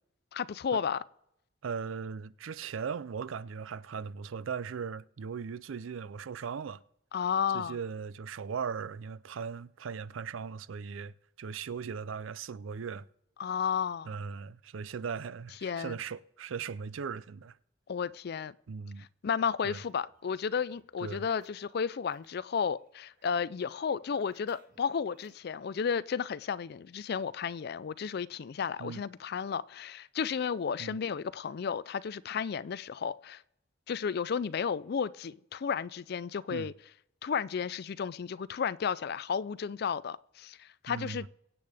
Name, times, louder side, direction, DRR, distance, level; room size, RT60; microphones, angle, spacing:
voice 1, 0.3-1.0 7.1-7.8 13.4-14.1 15.6-16.0 17.9-18.5 19.0-33.4 33.9-36.7 37.2-41.3, left 6 dB, 55° left, 0.4 m, -33 dB
voice 2, 1.6-6.8 7.5-13.1 14.1-17.6 18.7-19.1 19.6-19.8 21.0-21.3 28.8-29.0 30.8-31.0 36.5-36.7 40.9-41.3, right 6 dB, 80° right, 0.4 m, -38 dB
sound 1, 19.9-22.5 22.8-25.6, right 3 dB, 45° right, 1.8 m, -65 dB
23.5 x 8.5 x 3.5 m
head